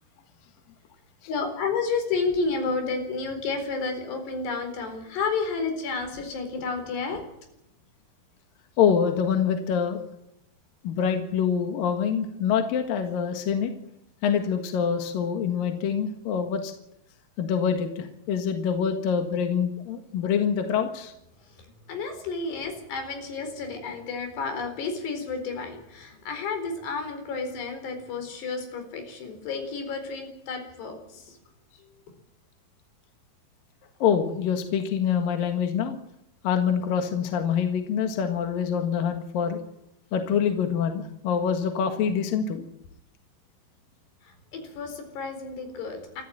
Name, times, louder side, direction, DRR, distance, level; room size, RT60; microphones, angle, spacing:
voice 1, 1.3-7.2 21.9-31.2 44.5-46.2, left 4 dB, 90° left, 6 dB, 6.4 m, -31 dB
voice 2, 8.8-10.0 10.8-13.7 14.2-16.7 17.4-21.1 34.0-36.0 36.4-39.6 40.1-42.6, left 7 dB, 65° left, 5 dB, 3.2 m, -25 dB
28.0 x 14.5 x 8.8 m, 0.81 s
omnidirectional pair, 4.7 m